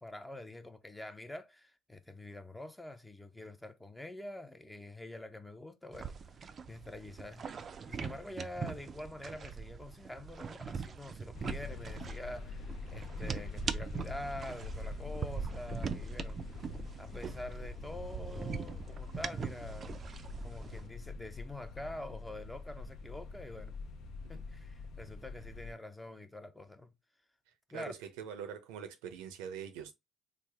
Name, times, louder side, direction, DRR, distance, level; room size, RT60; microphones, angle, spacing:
voice 1, 0.0-7.5 7.8-16.6 17.0-19.9 20.4-23.7 24.3-26.9 27.7-28.0, left 1 dB, 10° left, 0.6 m, -46 dB
sound 1, 5.9-20.9, right 6 dB, 40° right, 0.4 m, -42 dB
sound 2, 11.3-25.7, left 4 dB, 60° left, 0.6 m, -45 dB
voice 2, 27.7-29.9, right 8 dB, 80° right, 0.6 m, -43 dB
3.3 x 2.0 x 3.4 m
supercardioid pair, 75°, 0 cm